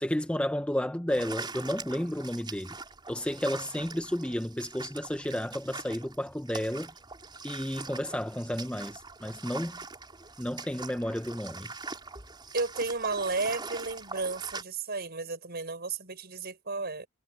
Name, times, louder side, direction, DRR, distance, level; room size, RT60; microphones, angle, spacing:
voice 1, 0.0-2.8 3.1-6.9 7.4-9.8 10.4-11.7, equal, 5° left, 0.8 m, -32 dB
sound 1, 1.1-14.6, right 4 dB, 25° right, 4.3 m, -43 dB
voice 2, 12.5-17.1, right 3 dB, 55° right, 5.8 m, -33 dB
head